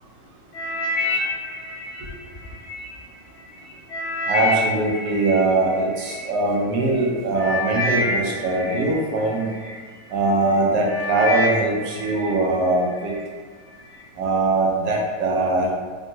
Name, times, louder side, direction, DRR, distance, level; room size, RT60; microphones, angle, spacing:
sound 1, 0.5-2.9 3.4-6.2 6.9-7.1 7.4-9.7 10.3-10.5 10.8-12.4 12.7-13.2 13.8-13.9, left 2 dB, 60° left, 0.8 m, -28 dB
voice 1, 4.3-9.5 10.1-13.1 14.2-15.7, right 2 dB, 70° right, -1 dB, 1.1 m, -21 dB
3.5 x 2.2 x 2.7 m, 1.5 s
omnidirectional pair, 2.0 m